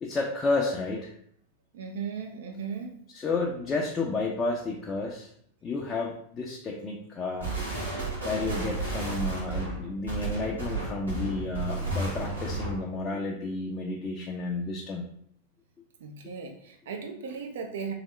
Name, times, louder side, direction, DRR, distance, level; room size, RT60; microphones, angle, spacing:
voice 1, 0.0-1.1 3.1-5.3 5.6-7.5 8.2-15.1, left 3 dB, 20° left, -2 dB, 0.5 m, -31 dB
voice 2, 1.7-2.9 16.0-17.9, right 6 dB, 60° right, 4 dB, 0.6 m, -36 dB
sound 1, 7.4-12.9, right 2 dB, 85° right, 1.5 m, -32 dB
3.5 x 3.2 x 3.0 m, 0.67 s
figure-of-eight pair, 90°, 0 cm